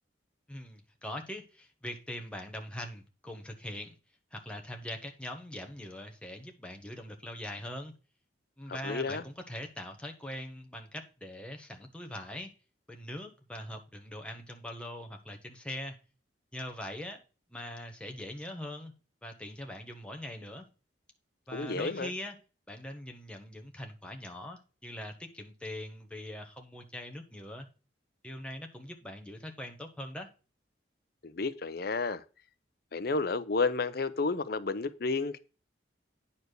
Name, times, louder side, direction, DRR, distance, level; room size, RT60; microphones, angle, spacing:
voice 1, 0.5-3.9 4.3-7.9 8.6-12.5 12.9-15.9 16.5-17.2 17.5-18.9 19.2-20.7 21.5-22.3 22.7-27.7 28.2-30.3, left 1 dB, 5° left, 1.2 m, -42 dB
voice 2, 8.7-9.2 21.5-22.1 31.2-32.2 32.9-35.4, left 3 dB, 55° left, 0.6 m, -31 dB
9.4 x 4.3 x 6.7 m
head